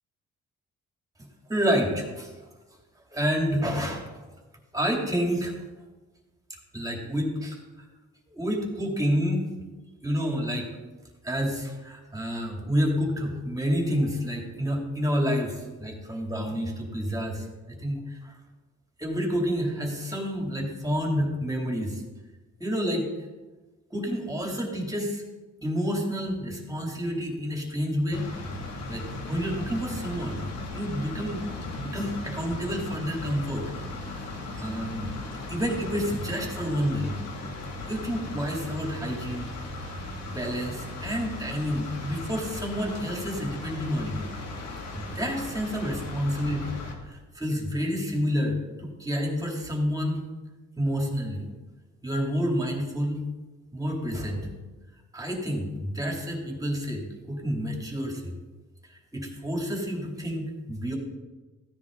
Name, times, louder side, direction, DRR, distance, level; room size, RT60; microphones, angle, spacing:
voice 1, 1.5-2.3 3.1-4.2 4.7-5.6 6.7-7.8 8.3-9.5 10.0-10.7 11.2-18.3 19.0-22.0 22.6-23.1 23.9-25.2 25.6-28.3 28.9-30.5 30.7-31.5 31.7-33.7 34.0-34.3 34.6-35.1 35.5-37.1 37.6-39.5 40.0-44.2 44.9-46.8 47.0-50.2 50.8-51.4 52.0-53.2 53.7-54.5 55.1-58.3 58.8-61.0, equal, 10° right, 0 dB, 3.3 m, -29 dB
sound 1, 28.1-46.9, left 2 dB, 60° left, 2.9 m, -37 dB
16.0 x 10.0 x 4.1 m, 1.2 s
cardioid pair, 90°, 30 cm